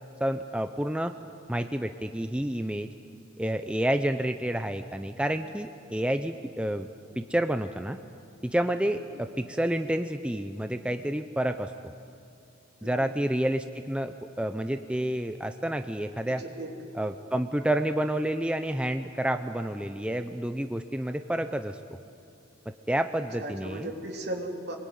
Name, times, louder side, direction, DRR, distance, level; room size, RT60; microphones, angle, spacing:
voice 1, 0.2-1.2 1.5-2.9 3.4-6.9 7.2-8.0 8.4-11.7 12.8-16.4 16.9-21.8 22.7-23.9, right 1 dB, 5° right, 8 dB, 0.6 m, -29 dB
voice 2, 16.3-16.7 23.4-24.8, right 1 dB, 55° right, 1 dB, 3.6 m, -36 dB
26.0 x 22.0 x 9.5 m, 2.6 s
head